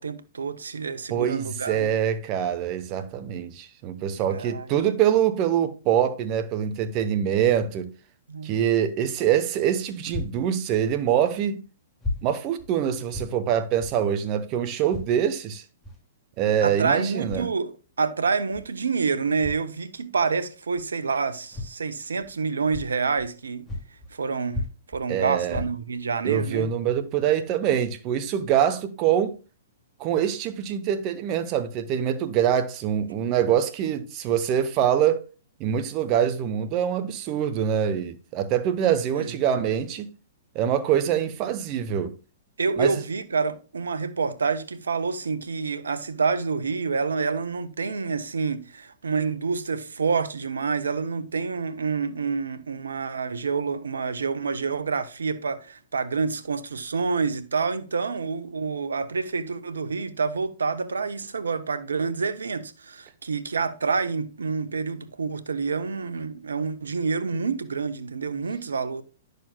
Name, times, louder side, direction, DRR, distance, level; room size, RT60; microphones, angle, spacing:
voice 1, 0.0-1.9 4.2-4.7 8.3-8.5 16.6-23.7 24.1-24.7 24.9-26.7 39.2-39.3 42.6-69.0, right 5 dB, 80° right, 0.8 m, -28 dB
voice 2, 1.1-7.9 8.4-11.6 12.2-15.6 16.4-17.5 25.1-25.6 26.2-29.4 30.0-35.2 35.6-40.1 40.5-42.1 42.8-43.0, right 9 dB, 35° right, 1.0 m, -24 dB
sound 1, 10.1-10.3 11.2-11.3 12.0-12.2 12.6-12.7 13.1-13.3 13.8-14.0 14.9-15.1 15.8-16.0 17.1-17.5 18.5-18.6 19.4-19.7 20.7-20.9 21.5-21.7 22.2-22.3 22.7-23.3 23.6-24.2 24.5-25.0 25.4-26.0 26.6-26.7 27.1-27.2, left 2 dB, 10° left, 2.5 m, -34 dB
10.5 x 6.7 x 2.3 m
hypercardioid pair, 115°, 0 cm